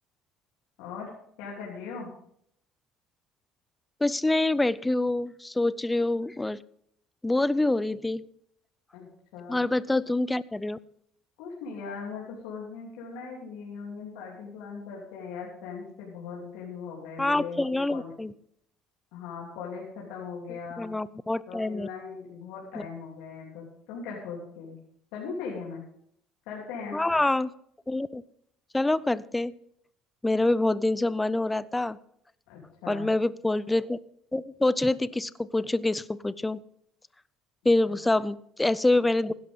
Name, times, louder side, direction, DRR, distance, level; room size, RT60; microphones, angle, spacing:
voice 1, 0.8-1.1 1.4-2.1 8.9-9.1 9.3-9.6 11.4-17.6 17.9-18.1 19.1-20.9 21.5-24.8 25.1-25.8 26.5-27.0 32.5-33.1, left 5 dB, 90° left, -4 dB, 3.2 m, -39 dB
voice 2, 4.0-6.6 7.2-8.2 9.5-10.8 17.2-18.3 20.8-21.9 26.9-27.5 27.9-28.2 28.7-29.5 30.2-32.0 32.9-34.0 34.3-36.6 37.6-39.3, left 2 dB, 10° left, 18 dB, 0.4 m, -26 dB
16.0 x 11.0 x 3.7 m, 0.70 s
cardioid pair, 135°, 0 cm